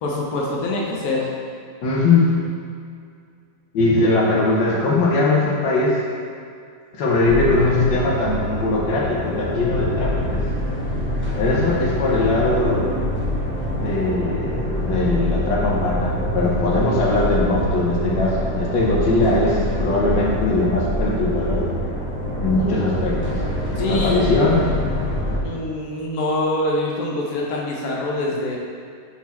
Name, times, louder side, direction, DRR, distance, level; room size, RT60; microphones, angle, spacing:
voice 1, 0.0-1.3 23.8-24.2 25.4-28.6, left 2 dB, 60° left, -3 dB, 1.1 m, -24 dB
voice 2, 1.8-2.3 3.7-6.0 6.9-10.5 11.4-13.0 13.8-21.7 22.4-23.4 23.9-24.8, left 2 dB, 75° left, -3 dB, 1.6 m, -20 dB
sound 1, 7.2-25.4, equal, 10° right, 0.7 m, -25 dB
5.8 x 4.2 x 4.1 m, 2.2 s
omnidirectional pair, 2.1 m